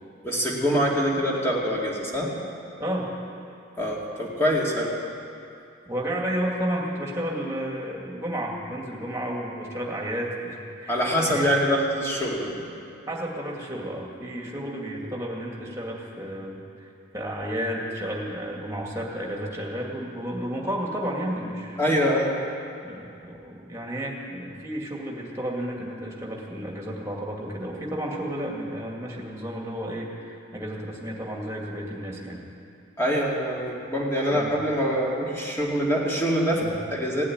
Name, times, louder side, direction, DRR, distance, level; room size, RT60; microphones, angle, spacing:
voice 1, 0.2-2.3 3.8-4.9 10.9-12.5 21.8-22.4 33.0-36.6 36.9-37.2, equal, 15° left, -4 dB, 2.2 m, -24 dB
voice 2, 5.8-11.5 13.1-16.6 17.1-22.0 22.8-32.4 34.3-34.5 36.6-36.7, equal, 15° right, -2 dB, 2.2 m, -32 dB
16.5 x 8.5 x 9.6 m, 2.5 s
head